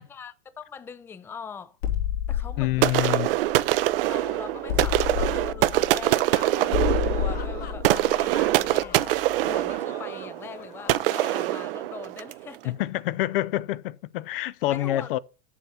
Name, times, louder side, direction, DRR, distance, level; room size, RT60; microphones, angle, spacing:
voice 1, 0.0-1.8 2.3-3.2 4.1-9.0 9.2-12.8 14.7-15.2, left 6 dB, 10° left, 0.4 m, -41 dB
sound 1, 1.8-4.2 4.7-9.3, left 11 dB, 85° left, 3.5 m, -30 dB
voice 2, 2.6-3.3 12.6-15.2, left 15 dB, 65° left, 0.6 m, -27 dB
sound 2, 2.8-12.5, right 16 dB, 65° right, 0.7 m, -24 dB
sound 3, 6.5-11.6, left 9 dB, 30° left, 1.1 m, -45 dB
7.9 x 7.4 x 5.6 m
supercardioid pair, 140°, 30 cm